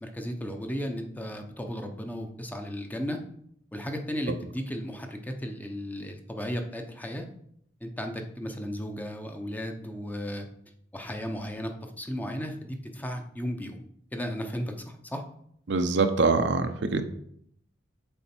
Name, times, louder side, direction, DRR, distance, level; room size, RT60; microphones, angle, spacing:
voice 1, 0.0-3.2 3.7-7.3 7.8-10.5 10.9-13.8 14.1-15.2, equal, 10° left, 4 dB, 0.7 m, -35 dB
voice 2, 15.7-17.0, right 3 dB, 65° right, 8 dB, 0.6 m, -24 dB
7.1 x 4.3 x 4.4 m, 0.68 s
head